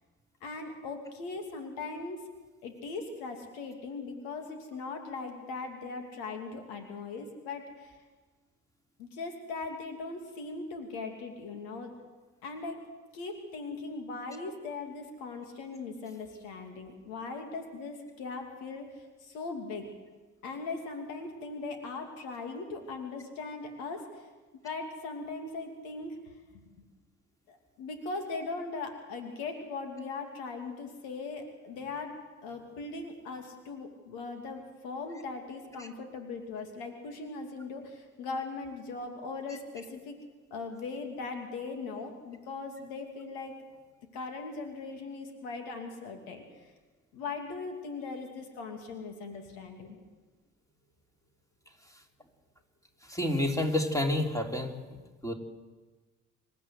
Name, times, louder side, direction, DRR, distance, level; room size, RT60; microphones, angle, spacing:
voice 1, 0.4-2.2 2.6-8.0 9.0-11.9 12.4-12.8 13.1-19.9 20.4-24.2 24.6-26.2 27.5-32.1 32.4-40.2 40.5-43.6 44.1-46.4 47.1-50.0, left 3 dB, 65° left, 5 dB, 3.0 m, -39 dB
voice 2, 53.1-54.7 55.2-55.3, left 1 dB, 10° left, 2 dB, 3.7 m, -28 dB
27.0 x 14.5 x 8.1 m, 1.3 s
figure-of-eight pair, 50°, 40 cm